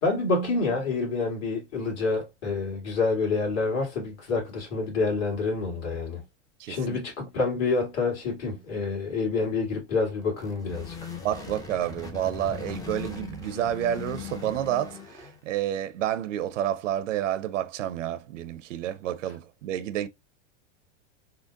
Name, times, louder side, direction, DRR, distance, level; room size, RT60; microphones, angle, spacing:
voice 1, 0.0-6.2 6.7-10.9, left 3 dB, 45° left, 1.8 m, -27 dB
voice 2, 6.6-7.0 11.2-20.1, right 11 dB, 90° right, 0.6 m, -30 dB
sound 1, 10.2-15.5, left 6 dB, 10° left, 0.4 m, -39 dB
3.8 x 2.0 x 2.5 m
supercardioid pair, 120°, 36 cm